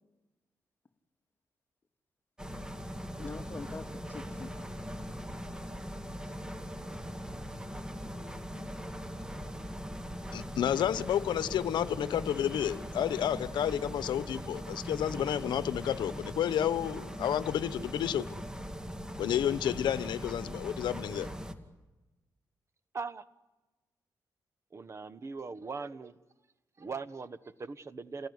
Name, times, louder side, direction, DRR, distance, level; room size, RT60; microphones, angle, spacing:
sound 1, 2.4-21.5, equal, 10° right, 2.3 m, -41 dB
voice 1, 3.2-4.5 6.2-6.3 8.0-8.8, left 3 dB, 25° left, 5 dB, 2.1 m, -45 dB
voice 2, 10.3-18.3 19.2-21.3, left 10 dB, 80° left, 14 dB, 0.9 m, -30 dB
voice 3, 24.7-26.2 26.8-28.3, right 4 dB, 40° right, 14 dB, 1.2 m, -40 dB
29.0 x 18.5 x 9.6 m, 1.1 s
cardioid pair, 90°, 8 cm